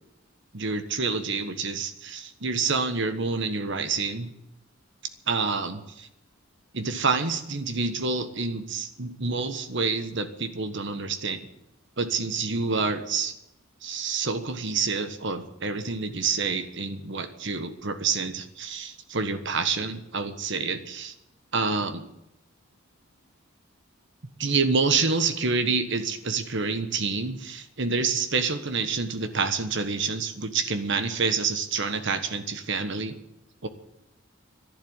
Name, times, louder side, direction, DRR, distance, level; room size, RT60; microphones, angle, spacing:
voice 1, 0.5-4.3 5.3-6.1 6.7-11.5 12.0-13.3 13.8-21.1 21.5-22.0 24.4-33.2 33.6-33.7, right 4 dB, 60° right, 9 dB, 1.4 m, -28 dB
11.5 x 11.0 x 9.9 m, 0.85 s
head